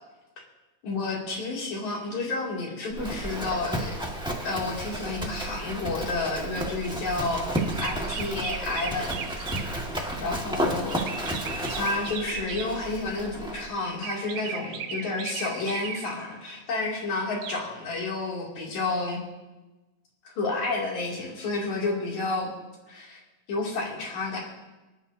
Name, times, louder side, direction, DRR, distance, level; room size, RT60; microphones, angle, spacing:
voice 1, 0.8-3.9 4.4-11.3 11.7-19.2 20.3-22.5 22.9-23.2 23.5-24.4, left 3 dB, 70° left, -3 dB, 4.0 m, -31 dB
Livestock farm animals working animals, 2.9-13.7, right 1 dB, 5° right, 0.7 m, -32 dB
sound 1, 7.6-9.9 10.9-12.8 14.0-16.3 17.4-17.6, right 7 dB, 75° right, 2.1 m, -37 dB
24.0 x 11.5 x 2.7 m, 1.1 s
omnidirectional pair, 3.4 m